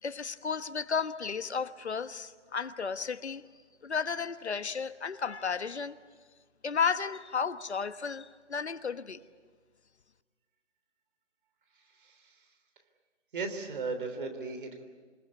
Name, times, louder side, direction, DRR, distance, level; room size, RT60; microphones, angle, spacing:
voice 1, 0.0-3.4 3.8-6.0 6.6-9.2, left 6 dB, 70° left, 1.3 m, -33 dB
voice 2, 12.0-12.3 13.3-14.8, right 4 dB, 45° right, 3.5 m, -36 dB
28.0 x 21.0 x 8.5 m
figure-of-eight pair, 155°, 35 cm